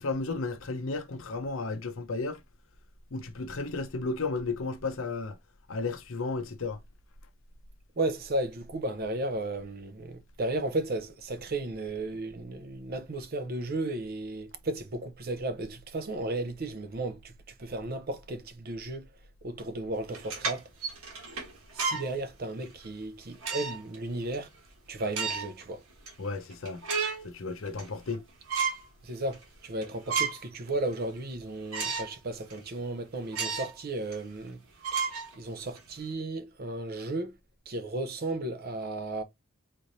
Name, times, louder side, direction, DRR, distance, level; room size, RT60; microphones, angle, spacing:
voice 1, 0.0-2.4 3.1-5.4 5.7-6.8 26.2-26.8 27.2-28.2, left 3 dB, 65° left, 0.6 m, -33 dB
voice 2, 8.0-17.3 17.6-19.1 19.4-20.6 21.7-24.5 24.9-25.8 29.0-34.6 34.9-35.0 35.4-37.3 37.7-39.2, right 2 dB, 45° right, 0.6 m, -34 dB
sound 1, 20.1-22.1 22.6-22.8 23.4-24.0 24.3-24.4 25.0-25.6 26.1-26.2 26.5-27.3 27.7-28.2 28.5-28.9 29.3-29.4 29.8-30.5 30.9-31.0 31.7-32.2 32.5-32.6 33.3-33.8 34.1-34.2 34.8-35.8, right 5 dB, 85° right, 1.4 m, -32 dB
4.2 x 3.2 x 2.6 m
head